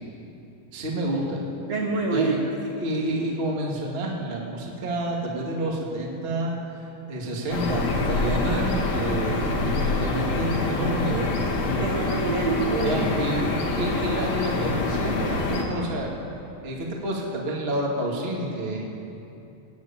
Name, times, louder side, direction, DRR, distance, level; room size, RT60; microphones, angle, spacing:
voice 1, 0.7-1.4 2.1-2.4 2.8-6.5 7.1-11.4 12.8-16.1 16.6-18.8, right 1 dB, 25° right, -1 dB, 1.3 m, -29 dB
voice 2, 1.7-2.6 11.8-13.0, right 4 dB, 65° right, 0 dB, 1.7 m, -26 dB
sound 1, 7.5-15.6, left 2 dB, 55° left, 2.8 m, -26 dB
17.0 x 9.6 x 8.7 m, 2.8 s
omnidirectional pair, 4.4 m